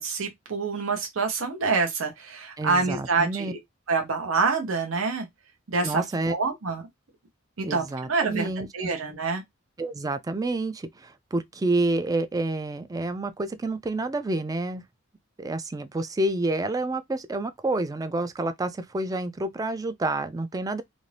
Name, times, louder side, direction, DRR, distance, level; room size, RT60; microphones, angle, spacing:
voice 1, 0.0-3.6 3.9-5.3 5.7-6.8 7.6-9.4, right 4 dB, 80° right, 0.8 m, -27 dB
voice 2, 2.6-3.5 5.8-6.4 7.6-8.7 9.8-14.8 15.4-20.8, right 2 dB, 20° right, 0.3 m, -28 dB
2.6 x 2.5 x 3.2 m
head